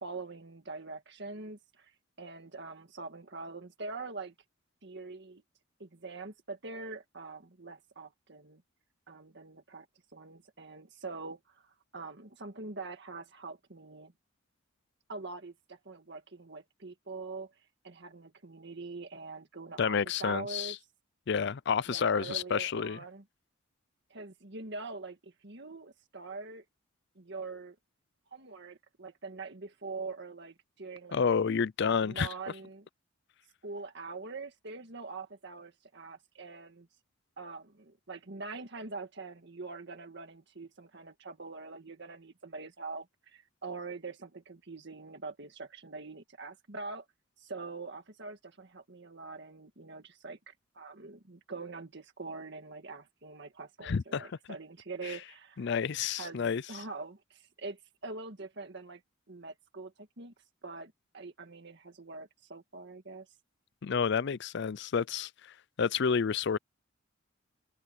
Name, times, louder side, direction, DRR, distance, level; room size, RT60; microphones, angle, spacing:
voice 1, 0.0-4.3 4.8-5.4 5.8-8.6 9.1-9.9 10.1-14.1 15.1-20.8 21.9-23.2 24.1-26.6 27.2-27.8 28.3-31.2 31.9-32.9 33.6-36.9 37.4-47.1 47.4-55.7 56.2-59.0 59.3-60.3 60.6-63.4, right 3 dB, 60° right, 1.8 m, -44 dB
voice 2, 19.8-20.8 21.3-23.0 31.1-32.3 53.8-54.3 55.1-55.2 55.6-56.6 63.8-65.3 65.8-66.6, left 6 dB, 60° left, 0.5 m, -29 dB
open air
head